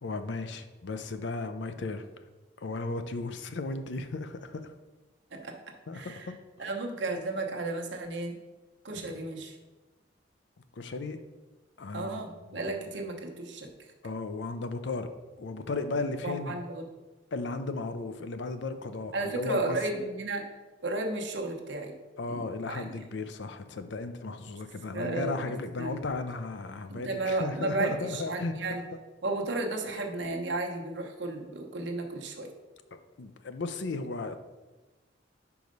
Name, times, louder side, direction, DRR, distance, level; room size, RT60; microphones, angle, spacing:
voice 1, 0.0-2.0 2.6-4.7 5.9-6.4 10.8-11.2 11.8-12.3 12.7-12.8 14.0-15.1 15.4-16.5 17.3-19.8 22.2-28.5 33.2-34.4, left 3 dB, 65° left, 9 dB, 0.5 m, -35 dB
voice 2, 5.9-8.4 8.8-9.6 11.9-13.7 16.2-16.8 19.1-20.4 20.8-21.9 22.3-23.0 24.9-26.0 26.9-28.8 29.2-32.5, right 2 dB, 65° right, 2 dB, 1.0 m, -33 dB
5.2 x 4.8 x 5.3 m, 1.2 s
head